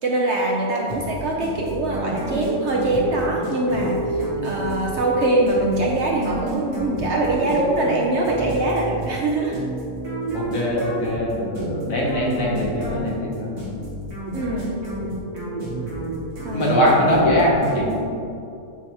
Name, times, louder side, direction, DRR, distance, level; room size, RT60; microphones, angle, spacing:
voice 1, 0.0-9.6 14.3-14.8 16.4-17.1, right 2 dB, 60° right, -1 dB, 0.8 m, -23 dB
sound 1, 0.9-18.4, right 1 dB, 85° right, 2.0 m, -31 dB
sound 2, 2.9-17.1, right 1 dB, 25° left, 1.3 m, -36 dB
voice 2, 10.3-13.5 16.5-17.9, left 1 dB, 65° left, -4 dB, 1.6 m, -21 dB
8.4 x 2.9 x 4.5 m, 2.5 s
omnidirectional pair, 1.6 m